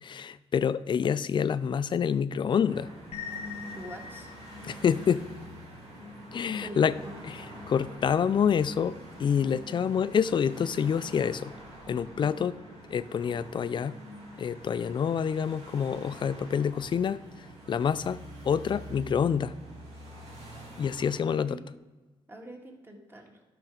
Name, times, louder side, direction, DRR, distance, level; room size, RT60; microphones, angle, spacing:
voice 1, 0.0-2.9 4.6-5.2 6.3-6.9 7.3-7.4 7.7-11.5 11.9-12.6 12.9-14.0 14.4-17.2 17.7-18.2 18.4-19.5 20.8-21.6, left 7 dB, 50° left, 15 dB, 0.4 m, -27 dB
sound 1, 2.7-21.2, right 1 dB, 80° right, 2.3 m, -47 dB
sound 2, 3.1-14.8, left 4 dB, 85° left, 0.9 m, -47 dB
voice 2, 3.7-4.3 6.6-7.1 21.3-21.7 22.3-23.4, right 1 dB, 20° right, 1 dB, 1.9 m, -44 dB
12.0 x 5.9 x 3.8 m, 1.2 s
cardioid pair, 80°, 11 cm